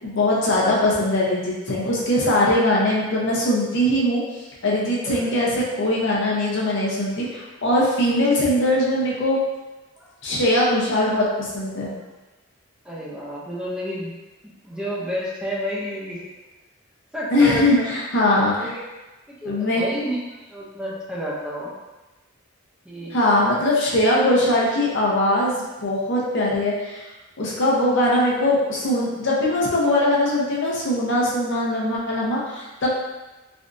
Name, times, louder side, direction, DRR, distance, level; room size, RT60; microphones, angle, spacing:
voice 1, 0.0-4.2 4.6-9.4 10.2-11.9 17.3-18.7 19.5-19.8 23.1-27.1 27.4-32.9, left 1 dB, 65° left, -4 dB, 0.7 m, -21 dB
voice 2, 12.8-14.1 14.4-16.2 17.1-17.9 18.6-18.8 19.3-21.7 22.8-23.2, equal, 5° right, -6 dB, 0.5 m, -30 dB
3.4 x 2.5 x 2.5 m, 1.1 s
head